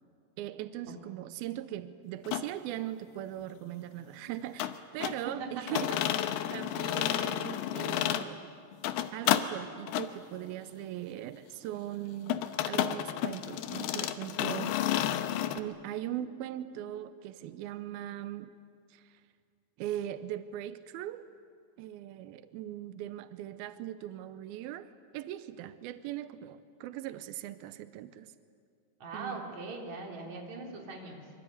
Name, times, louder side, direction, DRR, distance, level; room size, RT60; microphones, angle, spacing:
voice 1, 0.4-6.1 6.5-8.4 9.1-14.8 15.6-18.5 18.9-19.2 19.8-21.3 21.8-28.3 29.1-29.5, right 12 dB, 90° right, 12 dB, 2.1 m, -40 dB
sound 1, 2.2-2.5 4.6-5.2 5.7-8.3 8.7-9.5 9.9-10.1 12.3-15.6, left 12 dB, 75° left, 2.6 m, -31 dB
voice 2, 29.0-31.3, right 3 dB, 40° right, 0 dB, 4.3 m, -41 dB
26.0 x 24.5 x 9.4 m, 2.3 s
omnidirectional pair, 5.3 m